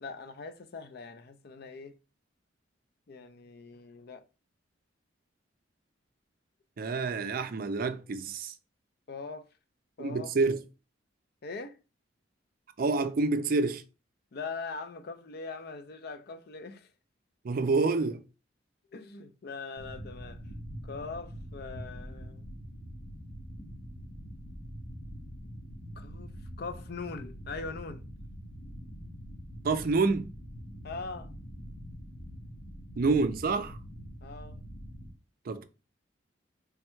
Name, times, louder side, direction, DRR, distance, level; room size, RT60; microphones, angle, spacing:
voice 1, 0.0-2.0 3.1-4.2 9.1-9.5 10.0-10.3 11.4-11.8 14.3-16.9 18.9-20.4 20.8-22.5 26.0-28.0 30.8-31.3 34.2-34.6, left 4 dB, 55° left, 0.5 m, -41 dB
voice 2, 6.8-8.5 10.0-10.6 12.8-13.8 17.4-18.2 29.6-30.3 33.0-33.8 35.5-35.6, right 3 dB, 50° right, 0.4 m, -27 dB
sound 1, 19.7-35.1, equal, 80° left, 1.0 m, -44 dB
3.4 x 2.2 x 4.4 m
head